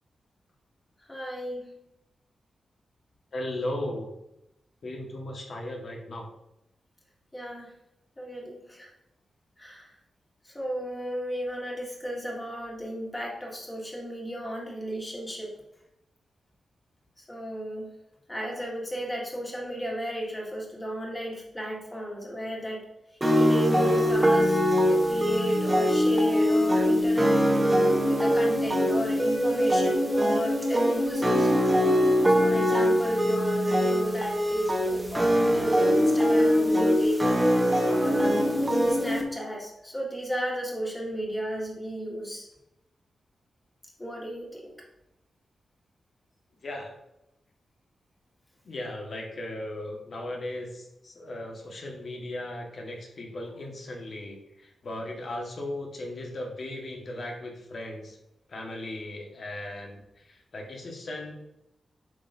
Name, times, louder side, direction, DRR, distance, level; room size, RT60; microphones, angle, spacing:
voice 1, 1.1-1.7 7.3-7.7 8.2-8.9 9.6-9.9 10.5-15.5 17.3-17.9 18.3-22.9 23.3-24.6 24.9-27.4 28.0-31.5 32.3-38.4 38.9-42.5 44.0-44.7, equal, 15° left, -2 dB, 1.9 m, -34 dB
voice 2, 3.3-4.1 4.8-6.3 46.6-46.9 48.6-58.2 58.5-61.3, left 1 dB, 50° left, 1 dB, 1.6 m, -37 dB
sound 1, 23.2-39.2, equal, 15° right, 1.1 m, -23 dB
8.1 x 6.0 x 2.7 m, 0.87 s
wide cardioid pair, 140°, 0 cm